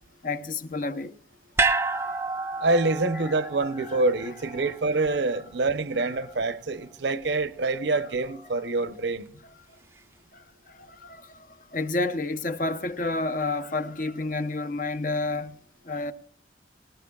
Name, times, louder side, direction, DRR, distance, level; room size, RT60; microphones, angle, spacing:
voice 1, 0.2-1.1 1.6-2.3 3.1-3.3 3.8-4.0 4.6-5.0 6.0-6.1 8.0-8.1 8.6-8.7 10.3-15.6 15.8-16.1, left 2 dB, 45° left, 0.8 m, -31 dB
sound 1, 1.6-5.9 6.2-6.3, right 3 dB, 15° right, 0.5 m, -30 dB
voice 2, 2.6-9.2, right 3 dB, 75° right, 0.8 m, -26 dB
19.0 x 18.0 x 2.4 m
head